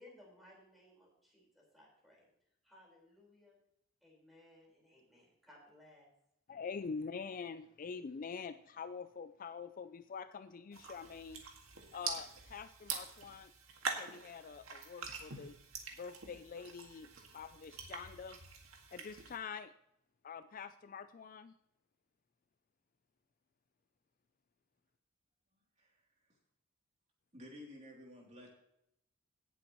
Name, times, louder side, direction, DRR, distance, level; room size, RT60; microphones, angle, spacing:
voice 1, 0.0-2.3 2.6-3.6 4.0-6.1, left 1 dB, ahead, -3 dB, 4.4 m, -61 dB
voice 2, 6.5-11.4 11.9-13.5 14.0-15.6 16.0-18.4 18.9-19.7 20.2-21.5, left 5 dB, 40° left, 12 dB, 0.4 m, -45 dB
sound 1, 10.7-19.4, right 5 dB, 75° right, 1.9 m, -45 dB
voice 3, 27.3-28.5, left 1 dB, 35° right, -2 dB, 3.0 m, -52 dB
17.5 x 7.9 x 3.0 m, 0.78 s
head